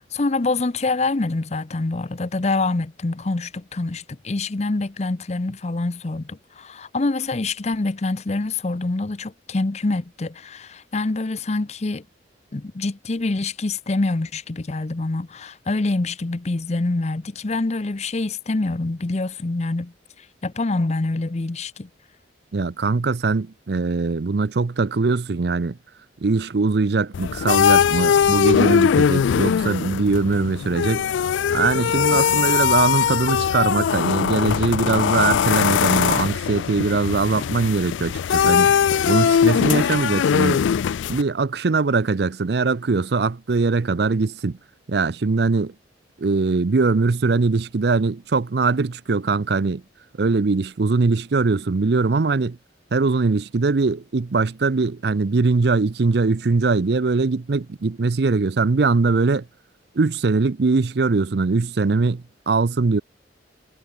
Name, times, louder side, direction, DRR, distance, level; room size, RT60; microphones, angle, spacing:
voice 1, 0.0-12.0 12.5-19.9 20.4-21.9, left 2 dB, 35° left, 0.6 m, -25 dB
voice 2, 22.5-25.8 26.2-31.1 31.5-38.7 39.1-40.6 41.1-44.6 44.9-45.7 46.2-49.8 50.2-52.6 52.9-59.4 60.0-63.0, right 4 dB, 60° right, 0.6 m, -21 dB
sound 1, 27.1-41.2, left 8 dB, 90° left, 0.3 m, -20 dB
head